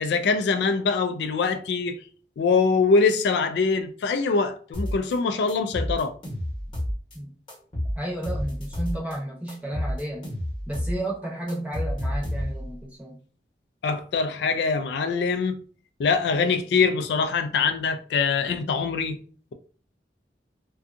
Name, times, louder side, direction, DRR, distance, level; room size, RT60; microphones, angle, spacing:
voice 1, 0.0-2.0 2.4-6.1 13.8-15.6 16.0-19.2, left 4 dB, 75° left, 0.3 m, -23 dB
sound 1, 4.7-5.2 5.5-7.2 7.5-9.2 9.5-11.0 11.2-12.7, equal, 30° left, 0.9 m, -30 dB
voice 2, 7.9-10.3 10.7-13.2, right 1 dB, 10° right, 0.7 m, -32 dB
2.6 x 2.3 x 2.5 m
head